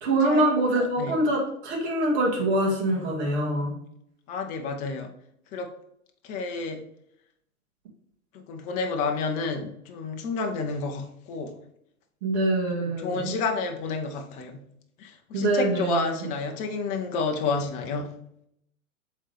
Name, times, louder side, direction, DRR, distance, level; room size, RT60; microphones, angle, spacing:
voice 1, 0.0-3.7 12.2-13.3 15.3-16.3, right 1 dB, 50° right, -1 dB, 1.9 m, -24 dB
voice 2, 0.7-1.1 4.3-5.1 5.5-5.7 6.2-6.8 8.3-11.5 12.8-14.6 15.0-18.1, left 4 dB, 20° left, 4 dB, 0.5 m, -30 dB
7.3 x 3.8 x 3.3 m, 0.75 s
hypercardioid pair, 115°, 43 cm